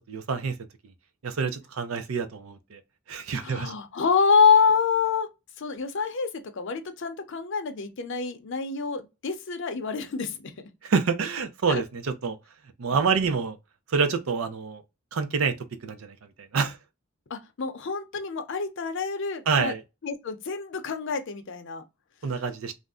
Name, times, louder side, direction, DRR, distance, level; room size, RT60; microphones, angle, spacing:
voice 1, 0.1-0.5 1.2-2.8 3.1-3.7 10.8-11.8 12.2-12.4 12.8-13.6 13.9-14.8 15.1-15.5 15.8-16.2 16.5-16.8 19.5-19.8 22.2-22.7, right 5 dB, 75° right, 0.5 m, -26 dB
voice 2, 3.4-5.3 5.6-10.7 11.7-11.8 17.3-19.7 20.0-21.8, left 5 dB, 60° left, 0.6 m, -26 dB
2.5 x 2.1 x 3.5 m
head